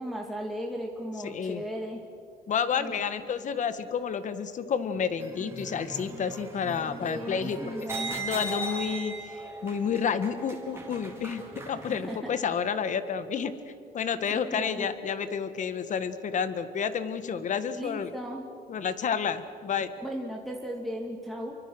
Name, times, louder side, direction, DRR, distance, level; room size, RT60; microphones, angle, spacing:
voice 1, 0.0-2.0 2.8-2.9 7.0-8.2 12.1-12.4 14.5-14.9 17.7-18.4 20.0-21.6, equal, ahead, -1 dB, 2.2 m, -36 dB
voice 2, 1.2-1.6 2.5-7.7 8.1-13.5 13.9-18.1 18.7-19.9, left 7 dB, 45° left, 11 dB, 1.7 m, -30 dB
sound 1, 5.2-12.1, right 2 dB, 15° right, 4.3 m, -38 dB
28.0 x 24.0 x 6.4 m, 2.6 s
cardioid pair, 110°, 17 cm